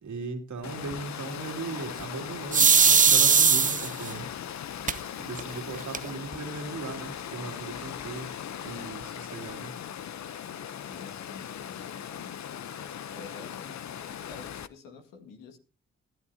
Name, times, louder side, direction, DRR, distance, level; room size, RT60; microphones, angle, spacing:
voice 1, 0.0-4.3 5.2-8.3 8.6-9.7, right 4 dB, 65° right, 4 dB, 2.7 m, -38 dB
Water, 0.6-14.7, left 9 dB, 60° left, 0.8 m, -39 dB
sound 1, 2.5-4.1 4.9-5.0 5.4-5.5 5.7-6.3, right 5 dB, 25° right, 0.5 m, -19 dB
voice 2, 10.8-12.3 13.1-15.6, left 4 dB, 90° left, 5 dB, 1.9 m, -48 dB
20.0 x 11.0 x 2.8 m, 0.32 s
supercardioid pair, 40°, 32 cm